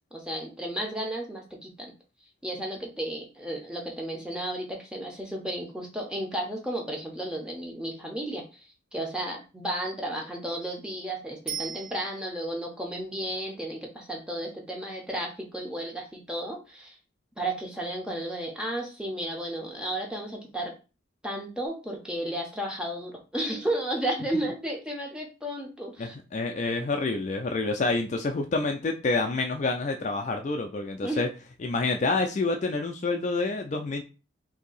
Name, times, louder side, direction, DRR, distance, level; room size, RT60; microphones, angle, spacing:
voice 1, 0.1-1.9 2.4-8.7 8.9-17.0 17.4-20.7 21.2-26.2 31.0-31.2, right 1 dB, 5° right, 0 dB, 0.6 m, -33 dB
Bicycle bell, 11.5-12.6 21.7-21.8, right 7 dB, 55° right, 1.2 m, -37 dB
voice 2, 26.0-31.3 31.6-34.0, left 3 dB, 35° left, 4 dB, 0.3 m, -28 dB
2.7 x 2.7 x 3.9 m, 0.32 s
head